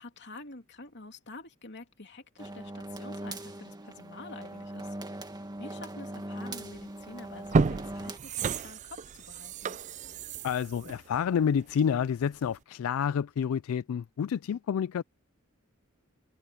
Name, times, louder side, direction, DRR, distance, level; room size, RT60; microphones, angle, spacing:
voice 1, 0.0-9.8, left 3 dB, 55° left, 3.0 m, -48 dB
sound 1, 2.4-8.2, right 1 dB, 20° right, 2.1 m, -40 dB
sound 2, 6.7-6.9 7.3-12.1 12.5-12.6, right 4 dB, 35° right, 0.4 m, -31 dB
voice 2, 10.4-15.0, left 7 dB, 75° left, 0.3 m, -29 dB
head